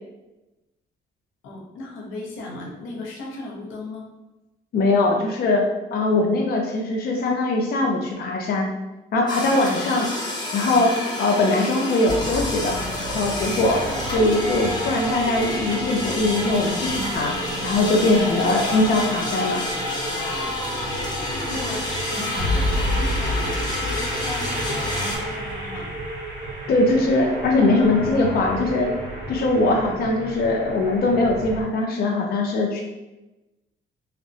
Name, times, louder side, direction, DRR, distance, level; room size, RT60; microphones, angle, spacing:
voice 1, 1.4-4.1 21.1-25.9, left 2 dB, 85° left, -1 dB, 0.7 m, -36 dB
voice 2, 4.7-5.6 5.9-8.7 9.1-10.1 10.5-13.8 14.1-17.3 17.6-19.6 26.7-28.9 29.3-32.8, left 2 dB, 50° left, 0 dB, 0.4 m, -21 dB
sound 1, 9.3-25.2, left 1 dB, 20° left, 0.8 m, -29 dB
sound 2, 12.1-31.6, equal, 60° right, 0.9 m, -30 dB
Breathing, 17.8-17.9 18.6-19.3 20.2-21.1 22.0-22.4 23.6-23.7 23.9-24.1 24.7-25.4, right 1 dB, 10° right, 0.4 m, -40 dB
2.7 x 2.1 x 2.6 m, 1.0 s
cardioid pair, 90°, 20 cm